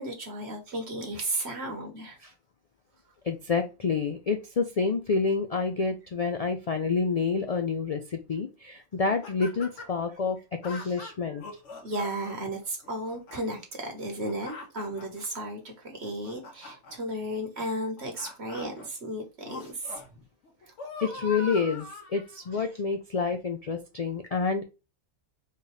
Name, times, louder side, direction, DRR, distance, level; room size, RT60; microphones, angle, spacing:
voice 1, 0.0-2.2 10.7-11.0 11.3-11.4 11.8-20.2 20.6-20.7 22.5-22.6, right 1 dB, 55° right, 1.6 m, -34 dB
voice 2, 3.2-11.4 21.0-24.6, left 4 dB, 85° left, 0.3 m, -28 dB
sound 1, 9.1-10.0 10.6-12.4 12.8-13.4 14.0-15.2 15.9-17.0 17.8-18.9 19.4-20.1 20.4-22.5 23.2-23.3, left 3 dB, 65° left, 1.4 m, -42 dB
4.4 x 3.3 x 3.1 m
omnidirectional pair, 1.3 m